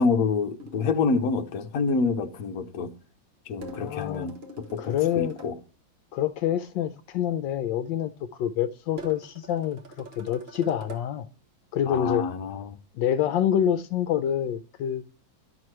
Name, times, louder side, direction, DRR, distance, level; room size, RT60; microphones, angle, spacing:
voice 1, 0.0-2.9 3.5-4.4 4.7-5.5 11.9-12.7, left 4 dB, 60° left, 1.1 m, -27 dB
sound 1, 0.6-1.3 3.6-5.5 9.0-11.1, equal, 35° right, 1.4 m, -43 dB
voice 2, 3.8-4.3 4.8-5.3 6.1-8.1 8.4-11.3 11.7-12.3 12.9-15.0, left 10 dB, 80° left, 1.2 m, -26 dB
11.5 x 6.2 x 3.0 m
omnidirectional pair, 2.1 m